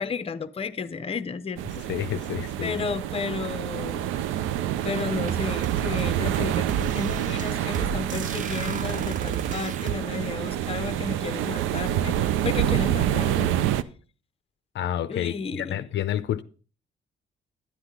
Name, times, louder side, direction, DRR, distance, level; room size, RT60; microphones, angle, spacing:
voice 1, 0.0-1.8 2.6-4.1 4.8-13.5 15.1-15.8, left 5 dB, 30° left, 0.7 m, -33 dB
sound 1, 1.6-13.8, right 11 dB, 90° right, 0.5 m, -27 dB
voice 2, 1.9-2.8 14.7-16.4, left 11 dB, 65° left, 0.5 m, -29 dB
sound 2, 4.9-10.0, right 8 dB, 40° right, 0.5 m, -33 dB
10.0 x 9.7 x 3.7 m
cardioid pair, 90°, 20 cm